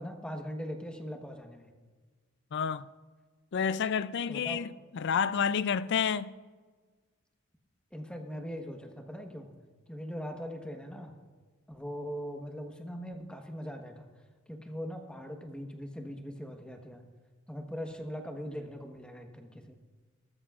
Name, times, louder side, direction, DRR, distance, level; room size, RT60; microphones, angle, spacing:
voice 1, 0.0-1.7 4.3-4.7 7.9-9.6 9.9-11.2 11.7-14.1 14.5-17.1 17.5-19.8, equal, 5° left, 1.2 m, -40 dB
voice 2, 2.5-2.8 3.5-4.7 4.9-6.3, left 7 dB, 55° left, 0.4 m, -29 dB
19.5 x 13.0 x 2.4 m
head